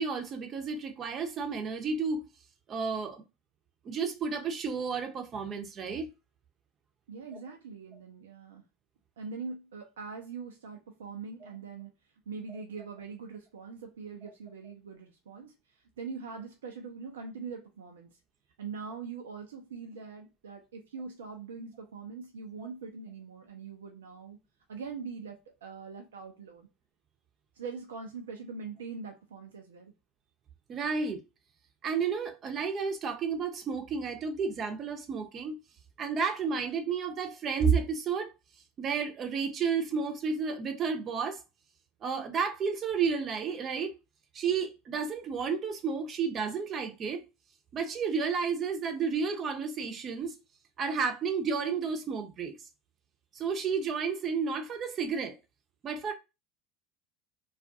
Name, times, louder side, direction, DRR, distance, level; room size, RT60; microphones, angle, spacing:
voice 1, 0.0-2.2 2.7-3.2 3.8-6.1 14.2-14.3 22.6-22.7 30.7-31.2 31.8-35.6 36.0-38.3 38.8-41.4 42.0-44.0 44.3-47.2 47.7-50.4 50.8-52.5 53.3-55.4 55.8-56.1, right 5 dB, 40° right, 0.6 m, -31 dB
voice 2, 7.1-8.6 9.2-11.9 12.3-15.5 16.0-18.1 18.6-24.4 24.7-26.7 27.6-29.9, right 5 dB, 80° right, 0.4 m, -42 dB
2.4 x 2.3 x 2.5 m
hypercardioid pair, 80°, 0 cm